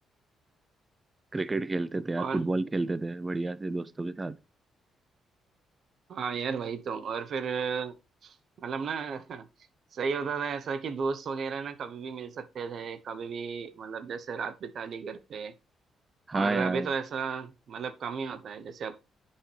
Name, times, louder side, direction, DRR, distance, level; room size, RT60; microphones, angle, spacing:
voice 1, 1.3-4.3 16.3-16.9, right 2 dB, 20° right, 0.5 m, -30 dB
voice 2, 6.1-8.0 8.2-9.4 9.9-15.5 16.3-19.0, right 5 dB, 60° right, 0.8 m, -34 dB
9.8 x 5.6 x 3.3 m
cardioid pair, 90°, 0 cm